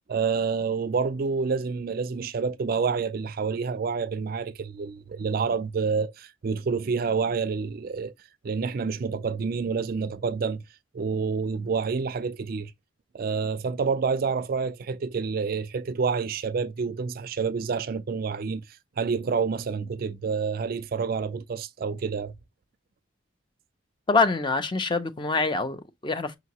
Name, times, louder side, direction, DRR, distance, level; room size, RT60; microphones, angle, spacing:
voice 1, 0.1-8.1 8.4-10.6 10.9-12.7 13.1-22.3, right 5 dB, 45° right, 0.3 m, -28 dB
voice 2, 24.1-26.3, left 3 dB, 25° left, 0.4 m, -25 dB
5.8 x 2.8 x 2.8 m
head